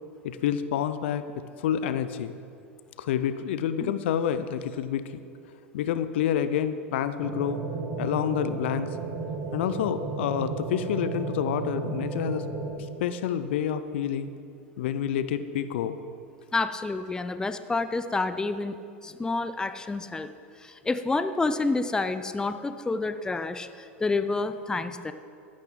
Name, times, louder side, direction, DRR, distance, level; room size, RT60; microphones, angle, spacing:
voice 1, 0.2-1.3 1.6-2.3 3.0-5.2 5.7-7.6 8.0-9.0 9.5-12.5 13.0-14.3 14.8-16.0, left 9 dB, 65° left, 12 dB, 0.6 m, -28 dB
sound 1, 7.2-12.7, right 3 dB, 35° right, 2.2 m, -33 dB
voice 2, 16.5-18.8 19.0-20.3 20.6-23.7 24.0-25.1, left 3 dB, 10° left, 11 dB, 0.5 m, -28 dB
14.5 x 11.5 x 3.8 m, 2.4 s
figure-of-eight pair, 85°, 7 cm